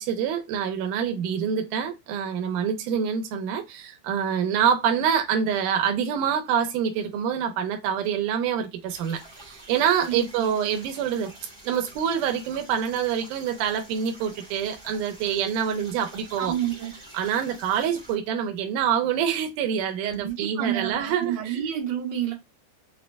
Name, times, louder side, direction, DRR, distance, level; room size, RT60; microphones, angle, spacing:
voice 1, 0.0-16.5 17.1-21.6, right 8 dB, 90° right, 2.2 m, -26 dB
sound 1, 8.9-18.1, right 1 dB, 25° right, 0.5 m, -47 dB
voice 2, 10.0-10.6 16.4-16.9 20.1-22.3, right 10 dB, 65° right, 2.2 m, -29 dB
5.8 x 2.2 x 2.3 m
omnidirectional pair, 3.6 m